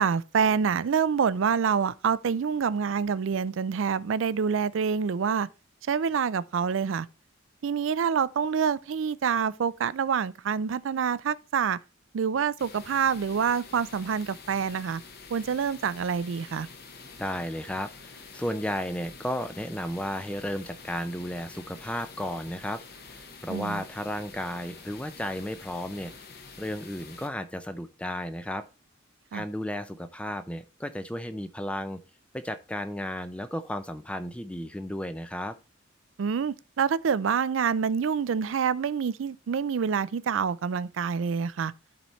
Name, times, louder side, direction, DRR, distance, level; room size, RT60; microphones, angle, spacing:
voice 1, 0.0-5.5 5.9-7.1 7.6-11.8 12.1-15.0 15.3-16.7 23.5-23.8 29.3-29.4 36.2-41.7, right 6 dB, 75° right, 0.4 m, -27 dB
sound 1, 12.6-27.3, left 4 dB, 50° left, 1.1 m, -47 dB
voice 2, 17.2-26.1 26.6-28.6 29.3-32.0 32.3-35.5, equal, 5° left, 0.4 m, -34 dB
12.0 x 4.2 x 3.1 m
head